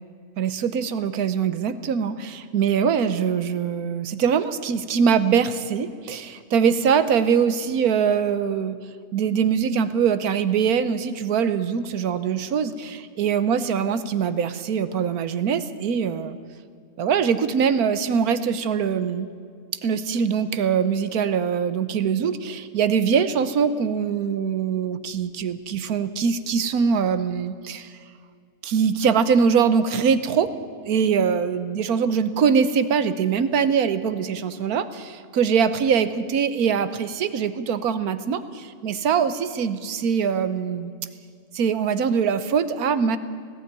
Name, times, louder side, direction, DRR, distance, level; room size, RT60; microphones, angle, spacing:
voice 1, 0.4-8.8 9.1-16.4 17.0-19.3 19.8-27.9 28.6-30.5 30.8-40.9 41.5-43.2, right 6 dB, 75° right, 13 dB, 1.4 m, -23 dB
18.5 x 15.0 x 9.6 m, 2.1 s
omnidirectional pair, 1.6 m